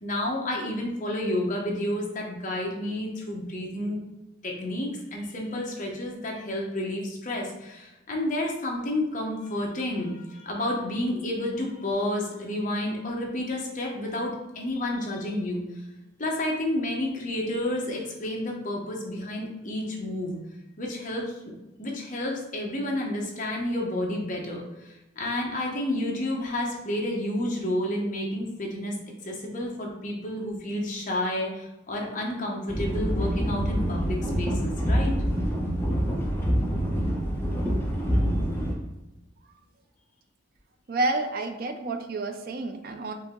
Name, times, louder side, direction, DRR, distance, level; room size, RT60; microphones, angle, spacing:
voice 1, 0.0-4.0 4.4-15.6 16.2-20.4 20.8-21.3 21.8-29.0 29.2-35.1 38.6-38.7, left 1 dB, 40° left, -1 dB, 1.0 m, -30 dB
sound 1, 32.7-38.7, equal, 10° left, 0.7 m, -26 dB
voice 2, 40.9-43.1, right 2 dB, 50° right, 7 dB, 0.4 m, -29 dB
5.2 x 2.7 x 3.7 m, 0.97 s
head